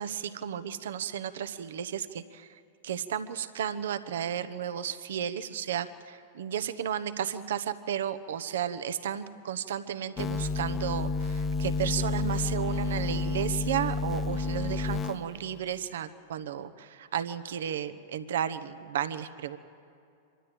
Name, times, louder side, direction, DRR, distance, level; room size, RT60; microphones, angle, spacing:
voice 1, 0.0-19.6, right 9 dB, 70° right, 12 dB, 1.0 m, -33 dB
sound 1, 10.2-15.6, left 3 dB, 25° left, 1.1 m, -30 dB
25.0 x 13.0 x 9.0 m, 2.5 s
hypercardioid pair, 100°, 0 cm